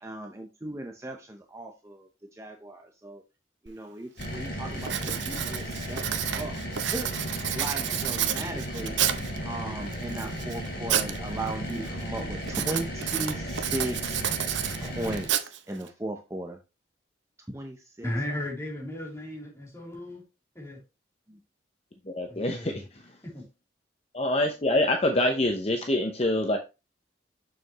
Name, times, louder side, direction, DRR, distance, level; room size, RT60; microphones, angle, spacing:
voice 1, 0.0-3.2 3.6-9.0 9.4-14.2 14.8-16.6 17.4-18.4 21.3-21.4, right 1 dB, 15° right, 3 dB, 0.7 m, -37 dB
Writing, 3.7-3.8 4.2-4.5 4.8-9.4 9.9-11.2 11.5-11.9 12.5-15.9, right 10 dB, 75° right, 0.8 m, -30 dB
sound 1, 4.2-15.3, equal, 55° left, 2.9 m, -35 dB
voice 2, 18.0-20.2 20.5-20.8 22.3-22.8 23.2-23.4, left 1 dB, 15° left, -4 dB, 3.1 m, -35 dB
voice 3, 22.1-22.8 24.1-26.6, left 1 dB, 35° left, 4 dB, 0.7 m, -25 dB
6.9 x 6.5 x 3.0 m, 0.27 s
head